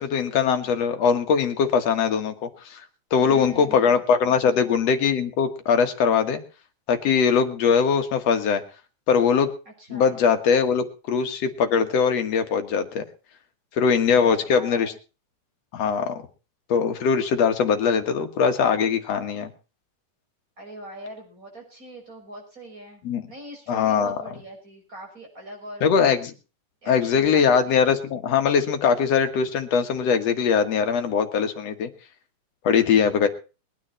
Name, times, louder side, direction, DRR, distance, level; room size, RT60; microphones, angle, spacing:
voice 1, 0.0-2.8 3.1-6.4 6.9-8.6 9.1-9.5 9.9-13.0 13.8-14.9 15.7-16.1 16.7-19.5 23.0-23.2 23.7-24.2 25.8-26.3 26.9-31.9 32.6-33.3, left 6 dB, 60° left, 7 dB, 2.5 m, -21 dB
voice 2, 3.2-4.7 9.8-10.2 14.1-14.9 20.6-23.0 23.3-26.2 26.8-27.8, right 1 dB, 25° right, 1 dB, 6.3 m, -42 dB
22.0 x 9.7 x 4.4 m, 0.34 s
omnidirectional pair, 3.6 m